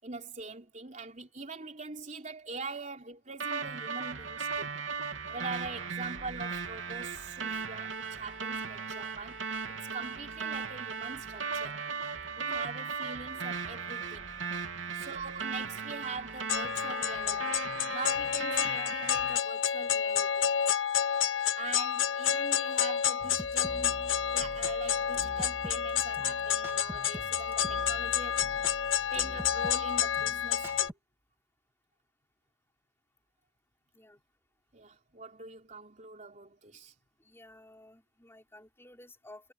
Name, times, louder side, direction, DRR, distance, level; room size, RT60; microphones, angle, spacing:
voice 1, 0.0-4.7 5.3-9.6 9.9-11.8 12.4-14.3 14.9-17.6 17.9-20.5 21.6-28.5 28.8-30.9 34.7-36.9, right 3 dB, 40° right, 3.7 m, -43 dB
sound 1, 3.4-19.4, right 5 dB, 85° right, 3.4 m, -37 dB
sound 2, 16.5-30.9, left 9 dB, 85° left, 1.2 m, -30 dB
voice 2, 18.8-19.1 33.9-34.2 37.2-39.5, left 1 dB, 15° left, 5.9 m, -54 dB
sound 3, 23.2-30.9, equal, 15° right, 2.2 m, -45 dB
head